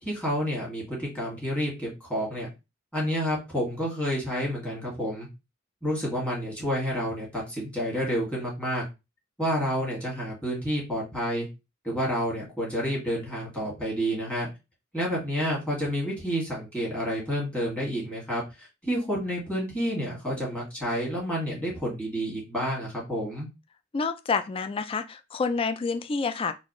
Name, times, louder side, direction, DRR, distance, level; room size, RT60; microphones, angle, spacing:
voice 1, 0.0-2.5 2.9-5.3 5.8-8.8 9.4-11.5 11.8-14.5 14.9-23.5, equal, 5° left, 1.8 m, -29 dB
voice 2, 23.9-26.5, left 4 dB, 25° left, 0.3 m, -28 dB
4.0 x 2.5 x 3.0 m
head